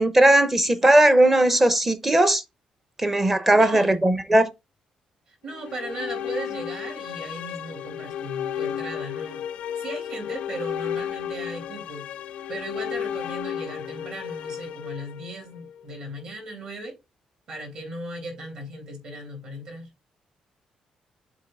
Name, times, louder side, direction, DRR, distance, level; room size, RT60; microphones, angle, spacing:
voice 1, 0.0-2.4 3.0-4.5, right 1 dB, 15° right, 0.7 m, -18 dB
voice 2, 3.5-4.0 5.4-9.4 9.8-12.1 12.5-16.9 17.5-19.9, right 1 dB, 45° right, 3.3 m, -37 dB
sound 1, 5.5-15.7, left 9 dB, 85° left, 0.5 m, -33 dB
7.3 x 2.9 x 5.3 m
cardioid pair, 170°, 2 cm